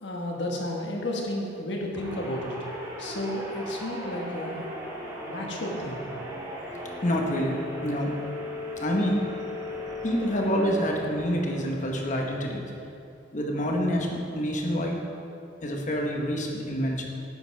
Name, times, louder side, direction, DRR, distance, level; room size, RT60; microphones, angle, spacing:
voice 1, 0.0-2.5 3.0-4.7 5.3-6.1, left 1 dB, 60° left, -1 dB, 1.3 m, -32 dB
sound 1, 1.9-12.3, left 1 dB, 15° right, 1.7 m, -37 dB
voice 2, 7.0-8.1 8.8-9.2 10.0-12.7 13.3-15.0 15.6-17.0, equal, 40° left, 0 dB, 1.1 m, -27 dB
10.5 x 8.0 x 3.4 m, 2.8 s
head